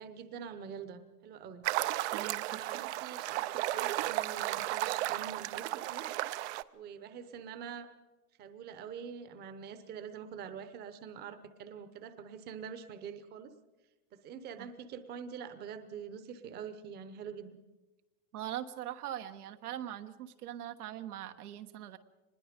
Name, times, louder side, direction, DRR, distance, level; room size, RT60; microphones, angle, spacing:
voice 1, 0.0-1.6 2.5-6.1 6.7-7.9 8.4-13.5 14.1-17.6, right 7 dB, 20° right, 11 dB, 0.9 m, -45 dB
sound 1, 1.6-6.6, right 16 dB, 50° right, 0.6 m, -34 dB
voice 2, 2.1-2.6 14.6-14.7 18.3-22.0, right 11 dB, 85° right, 8 dB, 1.4 m, -41 dB
24.5 x 20.5 x 5.2 m, 1.2 s
supercardioid pair, 155°, 44 cm